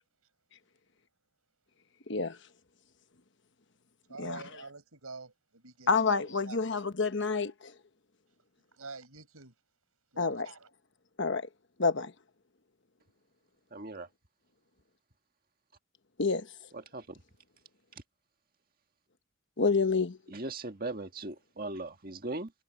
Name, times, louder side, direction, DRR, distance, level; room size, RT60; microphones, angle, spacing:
voice 1, 2.1-2.4 4.2-4.4 5.9-7.7 10.2-10.5 11.2-11.5 11.8-12.1 16.2-16.5 19.6-20.2, left 4 dB, 55° left, 1.2 m, -28 dB
voice 2, 4.1-6.8 8.7-9.5 10.1-10.7, right 3 dB, 85° right, 5.9 m, -47 dB
voice 3, 13.7-14.1 16.7-17.2 20.3-22.5, right 2 dB, 40° right, 1.8 m, -39 dB
head